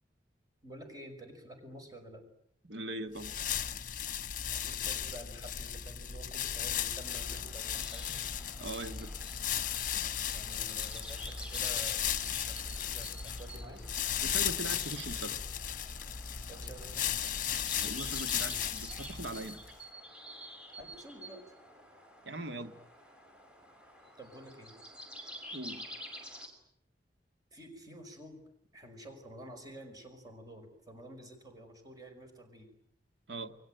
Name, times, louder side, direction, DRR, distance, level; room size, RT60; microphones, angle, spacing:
voice 1, 0.6-2.2 4.5-8.2 10.3-12.0 12.4-13.8 16.5-17.4 20.8-21.4 24.2-24.8 27.5-28.4 28.7-32.7, right 1 dB, 20° right, 4 dB, 5.6 m, -50 dB
voice 2, 2.6-3.3 8.1-8.2 8.6-9.1 14.2-15.4 17.8-19.6 22.2-22.7 25.5-25.9 33.3-33.6, right 2 dB, 85° right, 8 dB, 1.9 m, -41 dB
sound 1, 3.2-19.7, left 9 dB, 50° left, 1.1 m, -36 dB
sound 2, 7.0-26.5, equal, 5° right, 5.7 m, -49 dB
29.0 x 22.5 x 9.1 m, 0.70 s
head